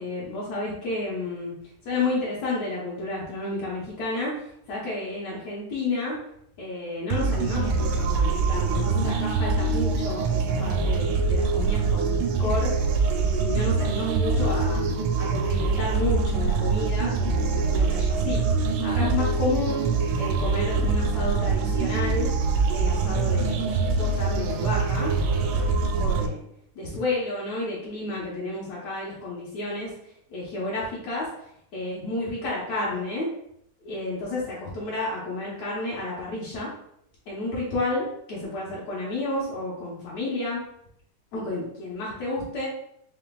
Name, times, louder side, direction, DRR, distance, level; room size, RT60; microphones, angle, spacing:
voice 1, 0.0-1.5 1.9-4.3 4.7-6.2 6.6-12.7 13.2-14.9 15.2-18.4 18.8-19.9 20.2-22.3 22.7-26.4 26.8-29.9 30.3-31.3 31.7-33.3 33.8-36.7 37.3-40.6 41.3-42.7, left 2 dB, 65° left, -6 dB, 1.9 m, -31 dB
sound 1, 7.1-26.3, right 4 dB, 80° right, 1.9 m, -24 dB
5.1 x 3.1 x 2.3 m, 0.72 s
omnidirectional pair, 3.7 m